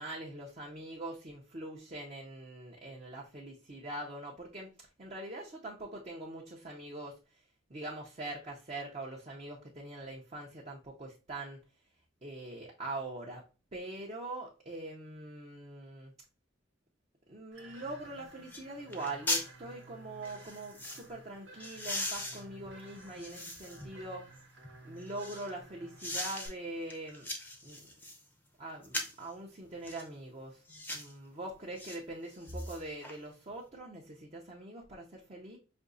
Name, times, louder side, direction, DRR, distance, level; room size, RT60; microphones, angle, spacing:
voice 1, 0.0-7.4 7.7-11.6 12.2-13.4 13.7-16.1 17.3-24.3 24.8-27.3 27.6-27.9 28.6-35.6, right 2 dB, 35° right, -2 dB, 0.6 m, -43 dB
sound 1, 17.5-26.5, right 2 dB, 65° right, 1.0 m, -54 dB
sound 2, 18.0-18.1 18.5-18.7 18.9-19.5 20.2-21.0 21.6-23.9 24.4-25.5 26.0-26.5 26.9-28.2 28.8-29.2 29.8-30.1 30.7-31.1 31.8-32.0 32.3-33.2 33.5-33.6, left 1 dB, 10° left, 0.6 m, -39 dB
5.2 x 2.7 x 2.6 m, 0.33 s
head